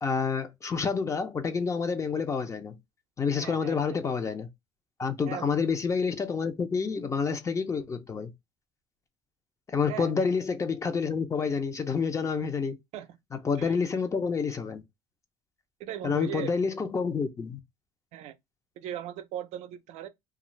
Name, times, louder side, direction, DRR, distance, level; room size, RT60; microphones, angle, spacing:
voice 1, 0.0-2.8 3.2-4.5 5.0-8.3 9.7-12.8 13.4-14.8 16.0-17.6, left 5 dB, 25° left, 0.6 m, -28 dB
voice 2, 3.4-3.8 5.2-5.6 9.9-10.1 12.9-13.2 13.6-13.7 15.8-16.5 18.1-18.4 18.8-20.1, right 11 dB, 70° right, 0.5 m, -38 dB
2.4 x 2.4 x 3.0 m
cardioid pair, 105°, 12 cm